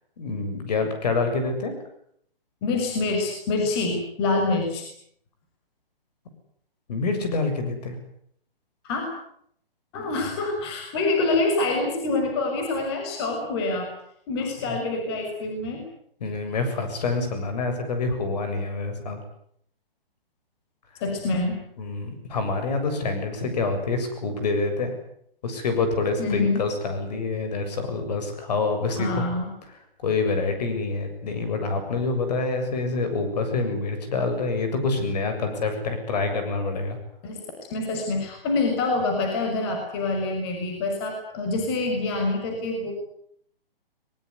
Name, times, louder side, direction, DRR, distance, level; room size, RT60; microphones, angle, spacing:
voice 1, 0.2-1.8 6.9-8.0 14.6-14.8 16.2-19.2 21.8-24.9 25.4-29.3 30.0-37.0, left 3 dB, 45° left, 7 dB, 7.4 m, -26 dB
voice 2, 2.6-4.9 8.8-9.0 9.9-13.9 14.3-15.8 21.0-21.6 26.2-26.6 28.9-29.5 37.2-37.4 37.7-42.9, left 3 dB, 25° left, 3 dB, 6.4 m, -26 dB
23.0 x 21.5 x 9.8 m, 0.69 s
hypercardioid pair, 165°, 29 cm